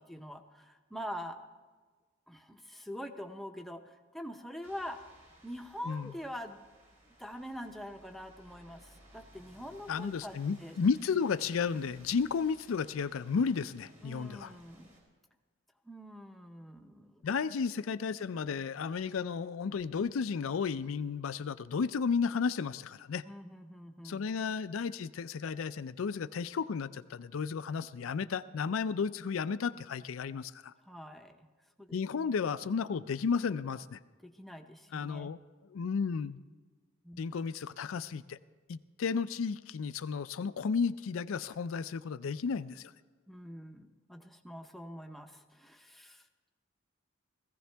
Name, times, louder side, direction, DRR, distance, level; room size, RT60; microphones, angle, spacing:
voice 1, 0.0-1.4 2.3-5.0 5.4-6.6 7.2-10.8 14.0-14.9 15.8-17.2 23.2-24.3 30.8-31.5 31.8-32.0 34.2-35.3 37.0-37.2 43.3-46.5, equal, ahead, 4 dB, 0.7 m, -45 dB
sound 1, 4.6-15.0, right 1 dB, 35° right, 3.4 m, -60 dB
voice 2, 9.9-14.5 17.2-23.2 24.0-30.7 31.9-34.0 34.9-35.4 35.7-36.4 37.2-38.4 38.7-42.9, left 5 dB, 90° left, 13 dB, 0.4 m, -33 dB
17.5 x 15.0 x 3.4 m, 1.4 s
head